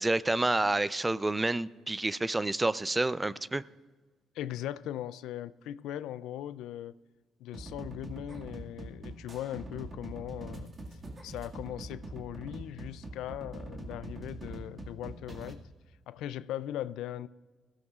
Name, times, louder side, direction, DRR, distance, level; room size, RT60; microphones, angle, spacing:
voice 1, 0.0-3.6, right 2 dB, 20° right, 0.4 m, -29 dB
voice 2, 4.3-7.0 7.4-10.7 11.2-15.6 16.1-17.3, left 12 dB, 80° left, 0.3 m, -39 dB
sound 1, 7.5-15.5, right 2 dB, 40° right, 1.9 m, -44 dB
20.5 x 15.5 x 2.4 m
supercardioid pair, 65°, 0 cm